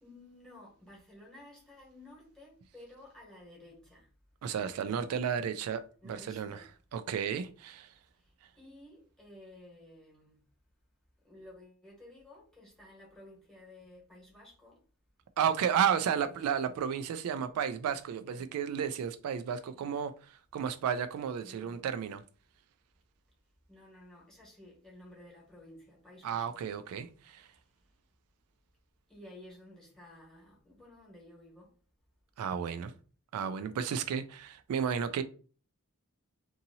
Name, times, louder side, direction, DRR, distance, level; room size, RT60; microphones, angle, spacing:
voice 1, 0.0-4.1 4.4-5.4 6.0-6.7 8.1-10.4 11.2-14.8 19.5-19.8 21.4-21.9 23.7-26.6 29.1-31.7, left 1 dB, 5° left, 1.1 m, -54 dB
voice 2, 4.4-6.6 6.9-7.9 15.4-20.1 20.5-22.2 26.2-27.5 32.4-32.9 33.3-35.2, right 8 dB, 80° right, 0.3 m, -32 dB
2.7 x 2.7 x 2.7 m
head